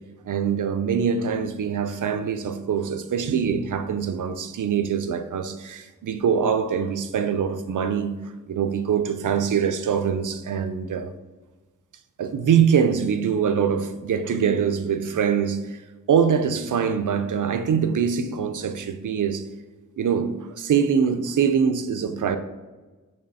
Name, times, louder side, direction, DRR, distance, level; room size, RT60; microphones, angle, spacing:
voice 1, 0.2-8.1 8.5-11.1 12.2-15.8 16.1-19.4 20.0-22.4, right 7 dB, 75° right, 0.6 m, -23 dB
6.6 x 3.4 x 5.4 m
wide cardioid pair, 110°, 31 cm